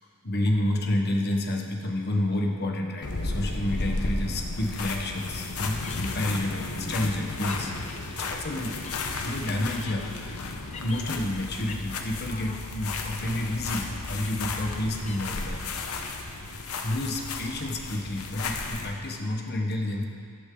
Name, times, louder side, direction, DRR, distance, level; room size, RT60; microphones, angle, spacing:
voice 1, 0.2-8.8 9.2-15.7 16.8-20.0, left 1 dB, 50° left, 2 dB, 1.3 m, -30 dB
sound 1, 3.0-18.9, left 3 dB, 85° left, 1.0 m, -34 dB
sound 2, 5.1-16.1, left 4 dB, 30° left, 0.7 m, -49 dB
14.5 x 11.0 x 3.9 m, 2.3 s
head